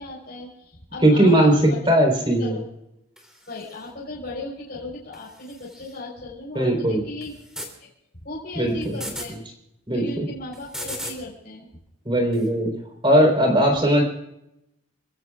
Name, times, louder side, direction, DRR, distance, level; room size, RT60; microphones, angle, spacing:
voice 1, 0.0-2.1 2.4-2.6 3.5-7.3 7.8-7.9 8.2-9.3 9.9-11.7, left 2 dB, 50° left, -4 dB, 4.3 m, -36 dB
voice 2, 1.0-2.6 6.5-7.0 8.6-9.0 9.9-10.0 12.1-12.7 13.0-14.0, right 1 dB, 25° right, 1 dB, 4.0 m, -18 dB
sound 1, 3.2-3.9 5.1-6.0 7.2-7.7 8.8-9.3 10.5-11.2 12.3-12.5, equal, 5° right, 3.0 m, -37 dB
28.0 x 16.0 x 2.4 m, 0.84 s
head